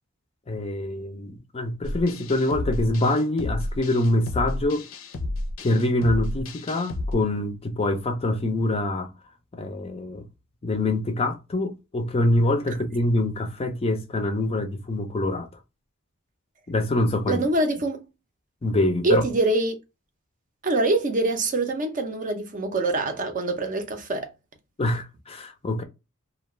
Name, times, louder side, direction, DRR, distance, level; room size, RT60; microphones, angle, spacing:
voice 1, 0.5-4.9 5.6-9.1 9.6-10.2 10.6-15.5 16.7-17.4 18.6-19.2 24.8-25.8, left 1 dB, 30° left, 0.4 m, -25 dB
sound 1, 1.8-7.1, left 2 dB, 80° left, 0.5 m, -31 dB
voice 2, 17.3-18.0 19.0-19.8 20.6-24.3, right 2 dB, 40° right, 0.5 m, -24 dB
2.3 x 2.2 x 3.1 m
head